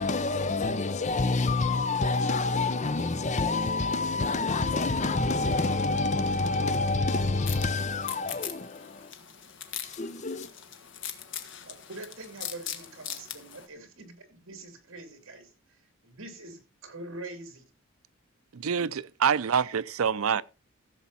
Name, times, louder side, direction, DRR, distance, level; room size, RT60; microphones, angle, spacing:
voice 1, 0.0-9.1 9.8-10.5, left 3 dB, 35° left, 0.7 m, -27 dB
sound 1, 7.5-13.7, left 9 dB, 60° left, 1.4 m, -40 dB
voice 2, 11.6-17.5, right 2 dB, 65° right, 2.7 m, -44 dB
voice 3, 18.5-20.4, right 7 dB, 85° right, 0.5 m, -26 dB
14.5 x 7.2 x 4.1 m
head